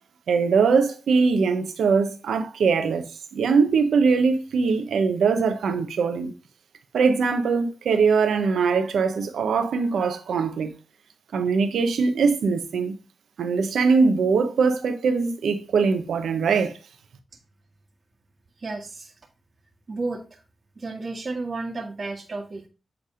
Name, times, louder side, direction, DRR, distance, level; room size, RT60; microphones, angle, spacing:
voice 1, 0.3-3.1 3.3-6.3 6.9-10.7 11.3-12.9 13.4-16.7, right 5 dB, 90° right, 1.0 m, -21 dB
voice 2, 18.6-19.1 19.9-20.4 20.8-22.7, right 3 dB, 50° right, 1.4 m, -32 dB
8.1 x 3.4 x 4.9 m
cardioid pair, 65°, 0 cm